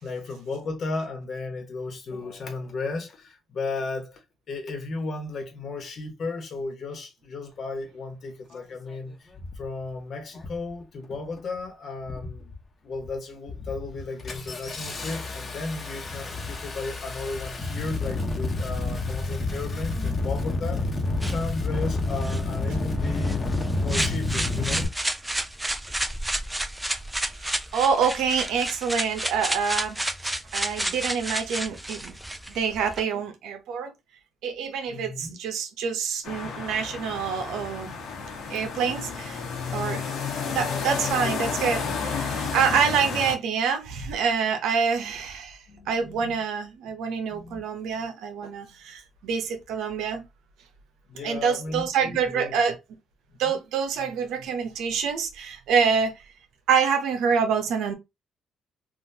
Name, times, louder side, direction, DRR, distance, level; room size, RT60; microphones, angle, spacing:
voice 1, 0.0-9.3 9.5-12.5 12.8-20.9 21.2-24.9 34.9-35.3 38.6-38.7 45.7-46.4 47.3-47.6 48.0-48.1 51.1-52.5 53.4-53.6, left 3 dB, 55° left, 1.2 m, -35 dB
Engine starting, 8.5-8.6 9.3-9.7 10.4-10.7 11.0-11.6 12.0-12.6 12.9-13.1 13.5-24.9, left 2 dB, 40° left, 1.0 m, -29 dB
sound 1, 21.2-33.0, right 1 dB, 10° right, 0.6 m, -31 dB
voice 2, 27.4-30.0 30.2-32.1 32.5-33.9 34.4-37.9 38.5-39.4 39.7-40.0 40.5-45.6 45.9-50.2 51.2-52.8 53.4-56.1 56.7-57.9, right 6 dB, 85° right, 0.8 m, -26 dB
sound 2, 36.2-43.3, left 5 dB, 80° left, 1.2 m, -31 dB
3.6 x 2.5 x 2.7 m
cardioid pair, 90°, 0 cm